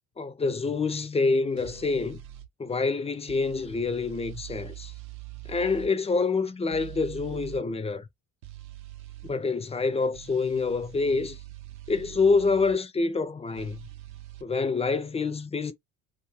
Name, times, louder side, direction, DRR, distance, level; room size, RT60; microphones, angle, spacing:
voice 1, 0.2-2.2 2.6-4.9 5.5-8.1 9.2-11.4 11.9-13.8 14.4-15.7, left 4 dB, 15° left, 0.4 m, -26 dB
sound 1, 1.6-2.5 3.3-5.9 6.7-7.6 8.4-9.3 10.1-12.8 13.6-14.4, right 15 dB, 70° right, 0.7 m, -44 dB
2.4 x 2.3 x 3.1 m
hypercardioid pair, 65°, 46 cm